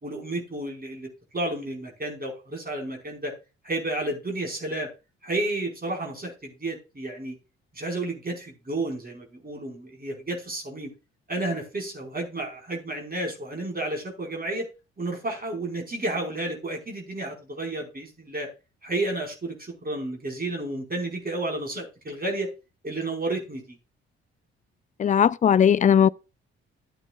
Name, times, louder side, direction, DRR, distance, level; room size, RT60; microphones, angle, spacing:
voice 1, 0.0-3.3 3.6-4.9 5.2-7.3 7.7-10.9 11.3-14.7 15.0-18.5 18.8-22.5 22.8-23.8, right 2 dB, 30° right, 4.8 m, -31 dB
voice 2, 25.0-26.1, left 8 dB, 25° left, 0.4 m, -18 dB
13.0 x 8.9 x 2.4 m
figure-of-eight pair, 40°, 32 cm